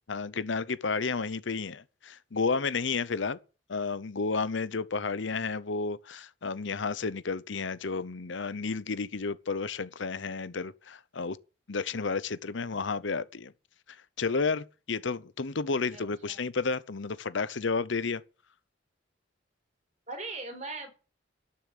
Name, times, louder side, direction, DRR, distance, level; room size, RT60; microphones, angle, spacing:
voice 1, 0.1-3.4 3.7-11.4 11.7-13.5 14.2-18.2, left 4 dB, 75° left, 0.8 m, -31 dB
voice 2, 15.9-16.4 20.1-20.9, right 3 dB, 35° right, 4.4 m, -40 dB
12.0 x 7.1 x 9.6 m
head